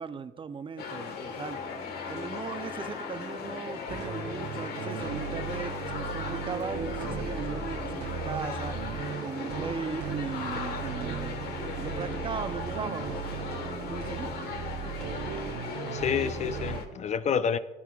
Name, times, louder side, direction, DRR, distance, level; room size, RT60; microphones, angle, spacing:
voice 1, 0.0-1.6 2.1-8.8 9.2-11.4 11.8-13.2 13.8-14.4, right 5 dB, 30° right, 0.5 m, -38 dB
sound 1, 0.8-16.9, left 5 dB, 65° left, 1.4 m, -38 dB
sound 2, 1.2-15.2, left 3 dB, 20° left, 0.8 m, -48 dB
sound 3, 3.9-16.8, right 7 dB, 70° right, 0.9 m, -37 dB
voice 2, 15.9-17.6, left 7 dB, 40° left, 0.5 m, -29 dB
17.5 x 11.0 x 2.4 m
cardioid pair, 110°, 17 cm